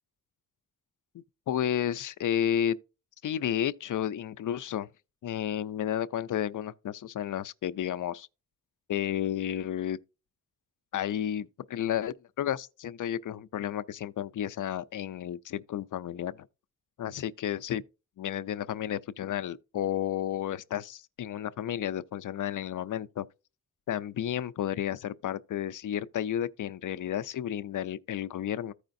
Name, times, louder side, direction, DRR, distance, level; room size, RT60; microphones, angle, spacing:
voice 1, 1.1-2.8 3.2-4.9 5.2-8.3 8.9-10.0 10.9-16.5 17.0-17.8 18.2-23.3 23.9-28.7, left 10 dB, 60° left, 0.5 m, -32 dB
14.5 x 4.9 x 2.6 m
wide cardioid pair, 155°, 35 cm